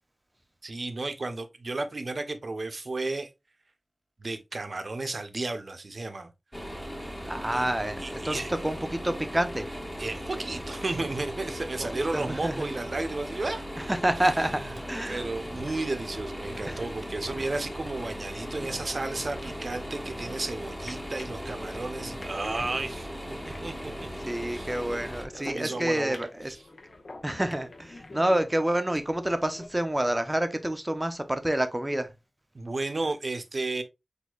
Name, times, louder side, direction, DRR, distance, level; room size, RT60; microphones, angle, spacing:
voice 1, 0.6-3.3 4.2-6.3 7.5-7.7 8.0-8.5 10.0-13.7 14.4-14.7 15.1-24.1 24.5-24.7 25.3-26.2 32.5-33.8, right 2 dB, 60° right, 0.7 m, -33 dB
sound 1, 6.5-25.3, equal, 10° left, 1.0 m, -38 dB
voice 2, 7.2-9.6 11.8-12.6 13.8-14.6 14.9-15.2 16.7-16.8 24.3-26.6 27.2-32.1, right 1 dB, 20° right, 0.6 m, -28 dB
sound 2, 16.4-29.7, left 2 dB, 75° left, 0.9 m, -48 dB
6.2 x 2.7 x 2.4 m
wide cardioid pair, 65°, 0 cm